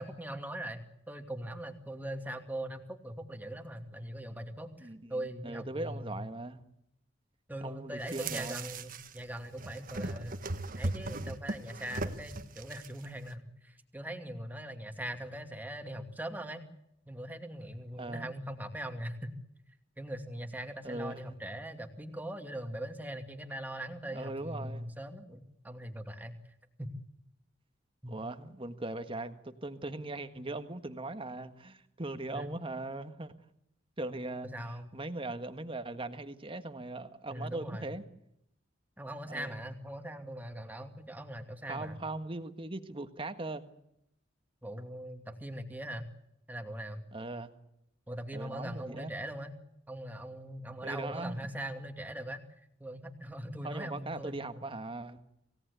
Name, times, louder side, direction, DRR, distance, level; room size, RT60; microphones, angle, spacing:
voice 1, 0.0-6.3 7.5-10.4 10.8-16.6 17.1-19.4 20.0-26.4 26.8-26.9 28.0-28.2 32.3-32.5 34.5-34.9 37.3-37.9 39.0-42.0 44.6-46.1 46.5-47.1 48.1-49.5 49.9-52.4 52.8-54.6, right 1 dB, 10° right, 6 dB, 2.5 m, -41 dB
voice 2, 4.8-6.7 7.6-8.7 18.0-18.3 20.8-21.4 24.1-24.8 28.1-33.3 34.0-34.5 34.9-38.0 39.3-39.6 41.7-43.6 47.1-47.5 48.3-49.1 50.8-51.4 53.6-55.2, right 2 dB, 30° right, 9 dB, 1.7 m, -39 dB
sound 1, 8.0-9.2 9.4-13.0, right 2 dB, 45° right, 1.5 m, -38 dB
27.0 x 18.0 x 8.3 m, 0.80 s
head